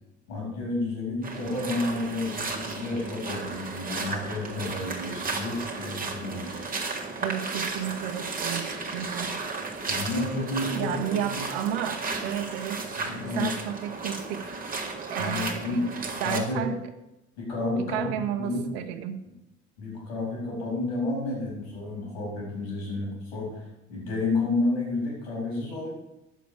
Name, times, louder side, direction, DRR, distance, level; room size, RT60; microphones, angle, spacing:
voice 1, 0.3-6.6 9.9-11.4 13.0-13.5 15.2-16.7 17.4-18.7 19.8-25.9, left 2 dB, 70° left, -3 dB, 4.1 m, -31 dB
sound 1, 1.2-16.4, right 3 dB, 25° right, 1.7 m, -34 dB
voice 2, 7.2-9.6 10.7-14.5 15.1-15.8 16.2-16.8 17.9-19.2, right 10 dB, 65° right, 8 dB, 0.9 m, -32 dB
9.9 x 6.9 x 5.0 m, 0.92 s
figure-of-eight pair, 60°, 33 cm